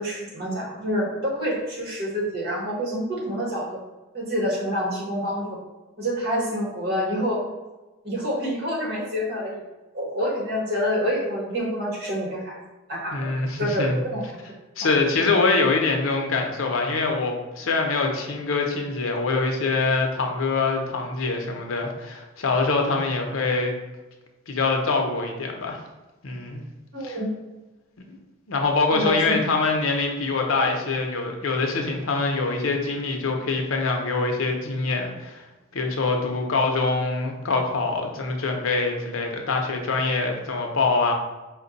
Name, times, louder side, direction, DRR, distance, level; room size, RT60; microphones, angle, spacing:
voice 1, 0.0-3.8 4.1-5.6 6.0-7.4 8.0-9.6 9.9-12.6 12.9-14.2 26.9-27.3 28.9-29.6, equal, 50° right, -4 dB, 1.2 m, -27 dB
voice 2, 13.1-14.0 14.8-23.7 24.5-25.8 26.2-26.6 27.0-27.2 28.1-28.2 28.5-35.4 35.7-41.1, left 3 dB, 90° left, 3 dB, 0.7 m, -24 dB
4.3 x 2.2 x 3.9 m, 1.1 s
head